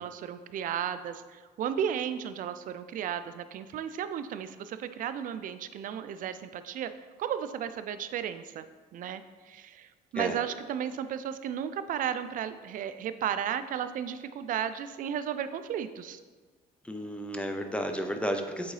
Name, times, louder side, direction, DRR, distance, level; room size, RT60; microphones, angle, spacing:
voice 1, 0.0-6.9 7.2-8.7 8.9-16.2, right 9 dB, 55° right, 11 dB, 0.4 m, -34 dB
voice 2, 16.8-18.7, equal, 5° left, 5 dB, 0.5 m, -32 dB
7.8 x 3.8 x 3.2 m, 1.4 s
cardioid pair, 110°, 17 cm